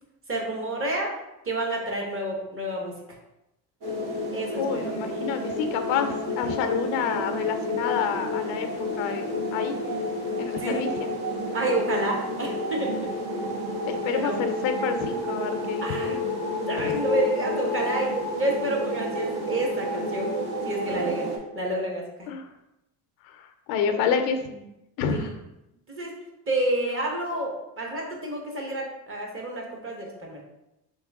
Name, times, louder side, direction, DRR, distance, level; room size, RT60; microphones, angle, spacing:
voice 1, 0.3-1.1 1.4-2.9 4.3-4.9 10.6-10.9 11.5-13.5 14.1-14.4 15.8-16.2 16.7-22.3 25.1-25.3 25.9-26.1 26.5-30.5, right 1 dB, 30° right, 0 dB, 1.1 m, -29 dB
sound 1, 3.8-21.4, left 1 dB, 55° right, 1.2 m, -30 dB
voice 2, 4.6-8.7 9.0-9.8 10.4-11.1 13.9-16.1 16.8-17.0 20.9-21.0 22.3-22.5 23.2-24.7 25.0-25.4, left 6 dB, 80° left, 7 dB, 0.6 m, -29 dB
3.2 x 3.0 x 3.5 m, 0.89 s
supercardioid pair, 90°, 45 cm